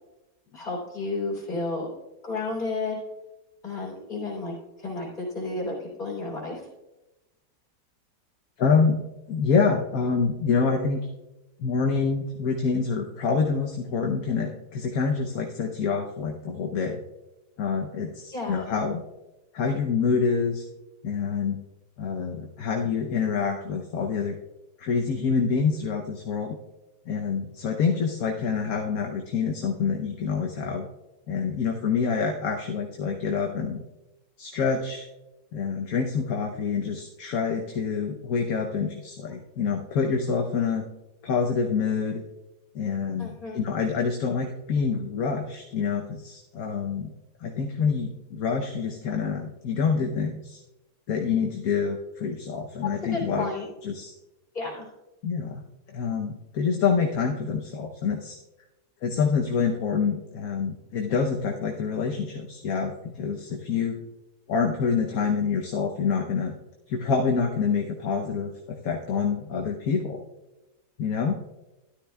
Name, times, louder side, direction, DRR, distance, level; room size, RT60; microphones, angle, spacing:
voice 1, 0.5-1.9 2.2-3.0 3.6-6.7 18.3-18.7 43.2-43.6 53.1-53.7 54.5-54.8, left 3 dB, 25° left, -3 dB, 3.4 m, -32 dB
voice 2, 8.6-11.0 11.6-17.0 17.6-19.0 19.5-20.6 21.0-21.6 22.0-24.3 24.8-26.6 27.1-30.9 31.3-33.8 34.4-35.1 35.5-40.8 41.2-42.2 42.7-47.1 47.4-50.6 51.1-53.4 53.8-54.1 55.2-55.6 55.9-58.4 59.0-64.0 64.5-66.5 66.9-70.2 71.0-71.4, left 5 dB, 60° left, 1 dB, 1.1 m, -26 dB
13.0 x 11.5 x 2.3 m, 1.0 s
omnidirectional pair, 1.9 m